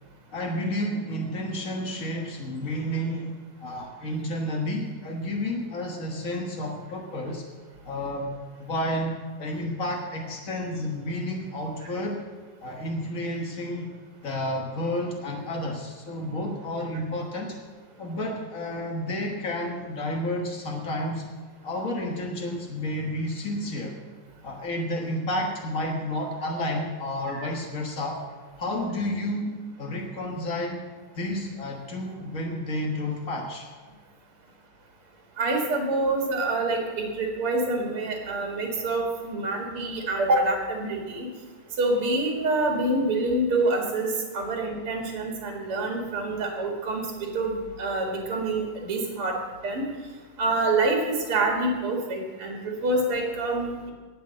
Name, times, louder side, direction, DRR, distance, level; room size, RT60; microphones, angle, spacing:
voice 1, 0.3-7.4 7.8-8.3 8.6-12.2 12.6-13.9 14.2-17.6 18.0-21.3 21.6-23.9 24.4-28.2 28.6-30.8 31.1-33.7, left 1 dB, 65° left, 1 dB, 0.8 m, -31 dB
voice 2, 35.4-41.3 41.8-47.1 47.3-49.4 49.6-49.9 50.4-53.9, right 2 dB, 45° right, 0 dB, 2.6 m, -26 dB
18.0 x 6.8 x 7.6 m, 1.5 s
omnidirectional pair, 3.8 m